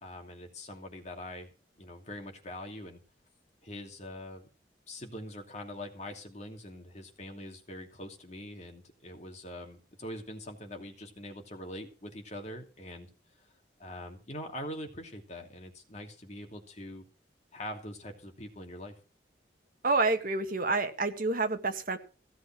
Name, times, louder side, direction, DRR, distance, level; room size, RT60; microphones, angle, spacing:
voice 1, 0.0-3.0 3.6-4.5 4.9-13.1 13.8-17.1 17.5-19.0, left 1 dB, 40° left, 3 dB, 2.7 m, -43 dB
voice 2, 19.8-22.0, right 3 dB, 55° right, 7 dB, 1.6 m, -28 dB
16.5 x 7.8 x 6.2 m, 0.36 s
head